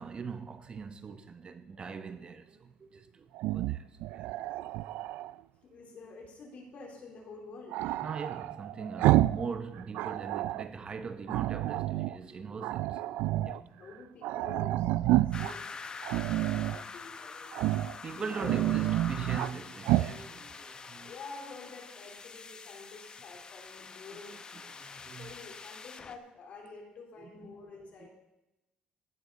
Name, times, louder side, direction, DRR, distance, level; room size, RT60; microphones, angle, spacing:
voice 1, 0.0-3.9 4.1-4.3 8.0-13.1 13.4-14.0 18.0-21.1 24.1-25.4 27.2-27.3 27.8-28.1, right 5 dB, 35° right, 0.9 m, -41 dB
Growling, 3.3-5.3 7.7-9.5 9.8-10.7 11.3-12.2 12.6-13.6 13.9-14.0 14.2-15.5 16.0-16.8 17.5-17.9 18.3-19.5 19.8-20.1, right 15 dB, 85° right, 0.3 m, -29 dB
voice 2, 5.6-7.8 13.8-15.9 16.4-17.6 17.9-18.5 20.9-24.4 25.1-28.1, left 4 dB, 55° left, 3.9 m, -48 dB
sound 1, 15.3-26.2, left 5 dB, 30° left, 0.8 m, -45 dB
15.5 x 11.5 x 4.1 m
cardioid pair, 110°, 3 cm